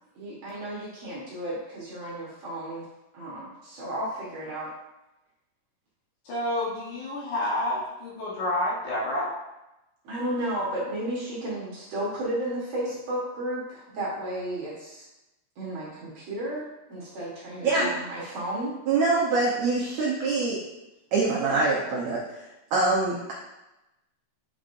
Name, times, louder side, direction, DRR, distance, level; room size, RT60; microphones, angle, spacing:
voice 1, 0.2-2.9 3.1-4.7 10.0-15.0 15.6-18.7, right 1 dB, 60° right, -6 dB, 2.0 m, -33 dB
voice 2, 6.3-9.3, left 1 dB, 65° left, -6 dB, 2.3 m, -29 dB
voice 3, 18.9-20.6 21.1-23.3, right 3 dB, 80° right, -5 dB, 1.5 m, -24 dB
8.5 x 5.0 x 2.6 m, 0.96 s
omnidirectional pair, 4.5 m